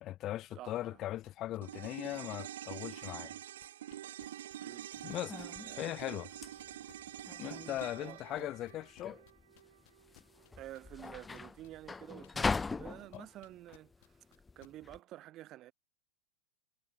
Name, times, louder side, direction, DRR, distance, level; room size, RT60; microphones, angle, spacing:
voice 1, 0.0-3.3 5.0-5.5 5.8-6.3 7.4-9.2 13.1-13.3, left 14 dB, 35° left, 0.7 m, -39 dB
voice 2, 0.5-1.0 4.6-4.9 5.6-6.0 7.9-8.5 10.6-14.2 14.5-15.7, right 14 dB, 35° right, 1.2 m, -50 dB
sound 1, 1.2-6.3 6.6-12.9 13.1-14.7, left 23 dB, 50° left, 2.8 m, -61 dB
sound 2, 1.6-10.1 10.4-10.5, right 12 dB, 60° right, 1.7 m, -46 dB
sound 3, 4.9-15.0, left 4 dB, 10° left, 0.3 m, -41 dB
figure-of-eight pair, 90°, 0 cm